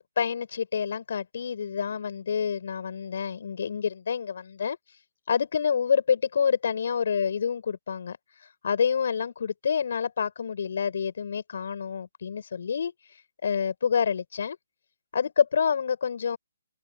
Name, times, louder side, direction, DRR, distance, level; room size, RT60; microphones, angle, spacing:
voice 1, 0.2-5.0 5.3-14.6 15.1-16.4, left 7 dB, 55° left, 6.5 m, -28 dB
open air
figure-of-eight pair, 135°, 0 cm